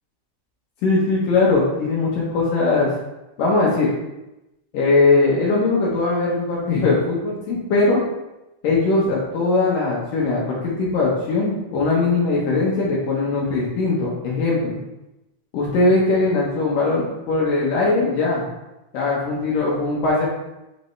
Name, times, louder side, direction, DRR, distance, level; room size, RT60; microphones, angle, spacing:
voice 1, 0.8-2.9 3.4-3.9 4.7-8.0 8.6-14.8 15.5-18.5 18.9-20.2, left 3 dB, 80° left, -5 dB, 1.9 m, -20 dB
6.9 x 5.4 x 3.2 m, 0.97 s
omnidirectional pair, 5.7 m